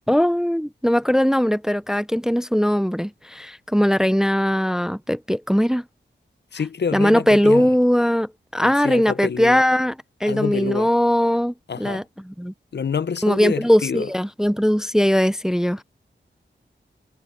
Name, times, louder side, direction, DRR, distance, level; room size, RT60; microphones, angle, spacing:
voice 1, 0.1-5.8 6.9-9.9 10.2-12.5 13.2-15.8, equal, 5° right, 0.5 m, -20 dB
voice 2, 6.5-7.7 8.6-9.6 10.3-10.9 11.7-12.0 12.7-14.1, left 6 dB, 60° left, 0.6 m, -27 dB
wide cardioid pair, 115°, 20 cm